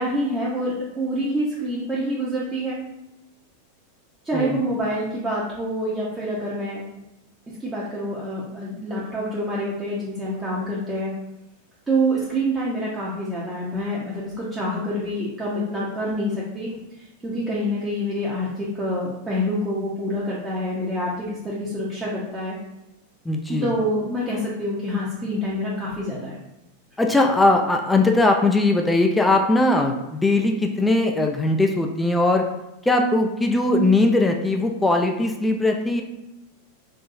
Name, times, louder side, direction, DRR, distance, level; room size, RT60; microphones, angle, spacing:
voice 1, 0.0-2.8 4.2-6.8 7.6-11.1 11.9-16.7 17.2-22.5 23.5-26.4, equal, 15° right, -7 dB, 0.8 m, -26 dB
voice 2, 23.3-23.7 27.0-32.4 32.8-36.0, left 2 dB, 5° left, 3 dB, 0.3 m, -20 dB
4.0 x 2.6 x 2.6 m, 0.95 s
figure-of-eight pair, 90°, 0 cm